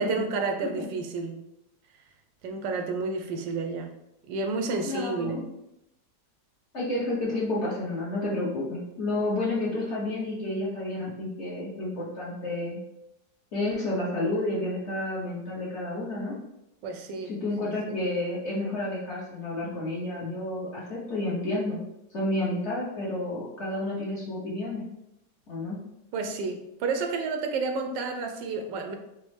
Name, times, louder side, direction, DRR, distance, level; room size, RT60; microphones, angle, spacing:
voice 1, 0.0-1.4 2.4-3.9 4.3-5.5 16.8-17.4 17.9-18.0 26.1-28.9, right 4 dB, 85° right, 4 dB, 1.3 m, -30 dB
voice 2, 4.9-5.4 6.7-12.8 13.5-16.4 17.3-21.8 22.1-24.8 25.5-25.8, left 2 dB, 50° left, -6 dB, 0.9 m, -30 dB
5.1 x 2.0 x 3.2 m, 0.86 s
omnidirectional pair, 2.0 m